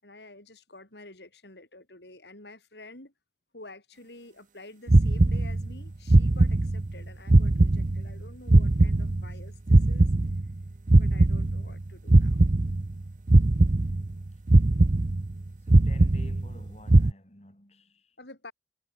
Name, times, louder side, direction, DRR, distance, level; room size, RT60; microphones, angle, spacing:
voice 1, 0.0-3.1 3.5-10.1 11.0-12.4 18.2-18.5, left 2 dB, 80° left, 6.4 m, -49 dB
sound 1, 4.9-5.8 6.1-7.0 7.3-9.4 9.7-11.8 12.1-13.0 13.3-14.2 14.5-15.4 15.7-16.6 16.9-17.1, right 2 dB, 45° right, 0.7 m, -20 dB
voice 2, 15.6-18.2, left 1 dB, 35° left, 4.1 m, -52 dB
head